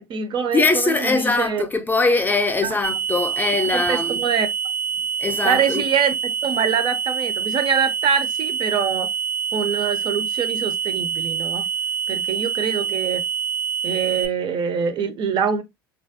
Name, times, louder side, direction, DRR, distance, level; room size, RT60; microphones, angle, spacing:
voice 1, 0.0-1.6 2.6-2.8 3.7-4.5 5.4-9.1 9.5-11.7 12.1-13.2 13.8-15.6, right 7 dB, 45° right, 0.5 m, -24 dB
voice 2, 0.5-4.2 5.2-5.8, left 3 dB, 15° left, 0.5 m, -21 dB
sound 1, 2.8-14.3, right 7 dB, 85° right, 0.7 m, -26 dB
3.2 x 2.4 x 2.6 m
hypercardioid pair, 85°, 12 cm